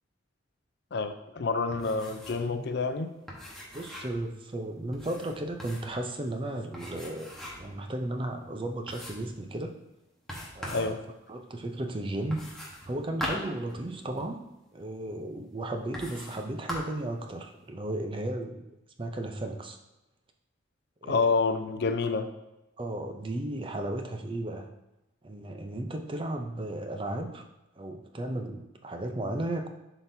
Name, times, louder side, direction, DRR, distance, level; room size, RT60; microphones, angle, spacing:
voice 1, 0.9-3.1 10.7-11.0 21.1-22.3, left 4 dB, 55° left, 8 dB, 0.5 m, -28 dB
sound 1, 1.7-2.5 2.8-2.9 3.3-4.2 4.9-6.0 6.7-7.7 8.2-8.3 8.9-9.4 10.3-10.9 12.3-14.3 15.1-15.2 15.9-16.4 16.7-17.1, equal, ahead, 1.1 m, -40 dB
voice 2, 3.7-9.7 10.5-11.0 11.3-12.5 12.9-14.4 14.7-18.7 19.0-19.8 21.0-21.3 22.8-24.7 25.2-27.5 27.8-29.7, right 1 dB, 25° right, 5 dB, 0.5 m, -34 dB
11.5 x 3.9 x 2.7 m, 0.95 s
head